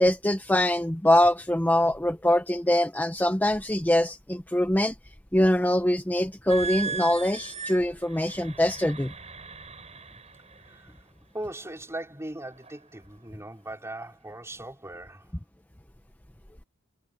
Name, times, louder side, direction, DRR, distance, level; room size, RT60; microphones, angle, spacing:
voice 1, 0.0-4.9 5.3-9.1, left 1 dB, 10° left, 0.8 m, -23 dB
sound 1, 6.5-11.0 11.6-11.9 12.5-12.8, right 5 dB, 30° right, 4.1 m, -38 dB
voice 2, 10.6-10.9 11.3-15.3, right 1 dB, 15° right, 4.8 m, -39 dB
head